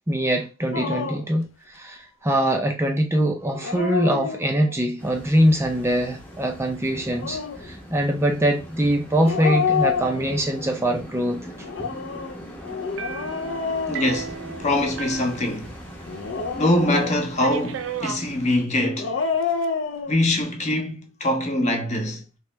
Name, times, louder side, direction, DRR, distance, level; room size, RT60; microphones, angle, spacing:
voice 1, 0.1-11.5, right 1 dB, 15° right, 0.4 m, -23 dB
Dog, 0.7-1.4 3.4-4.8 6.9-7.7 9.2-10.7 11.6-14.8 16.1-17.5 18.8-20.1, left 5 dB, 65° left, 0.5 m, -28 dB
sound 1, 5.0-18.6, equal, 10° left, 0.8 m, -41 dB
sound 2, 13.0-16.2 16.5-16.6 17.4-18.3 19.2-19.7, right 7 dB, 75° right, 0.4 m, -35 dB
voice 2, 13.9-14.3 14.6-15.7 16.5-19.2 20.1-22.2, left 1 dB, 35° left, 0.8 m, -23 dB
3.2 x 2.9 x 3.2 m
head